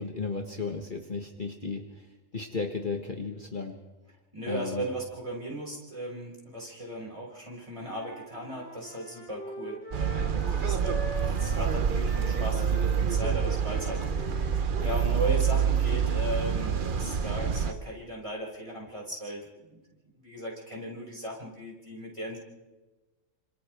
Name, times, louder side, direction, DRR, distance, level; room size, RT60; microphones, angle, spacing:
voice 1, 0.0-2.1 2.3-3.8 4.4-4.9, left 4 dB, 40° left, 2 dB, 1.4 m, -34 dB
voice 2, 4.3-19.8 20.2-22.4, right 1 dB, 25° right, -4 dB, 5.9 m, -37 dB
Wind instrument woodwind instrument, 7.8-11.7 12.0-16.4, right 1 dB, 10° left, 2.6 m, -43 dB
London sounds include moderate traffic, 9.9-17.7, right 7 dB, 45° right, 1.0 m, -27 dB
30.0 x 27.0 x 3.5 m, 1.1 s
omnidirectional pair, 1.4 m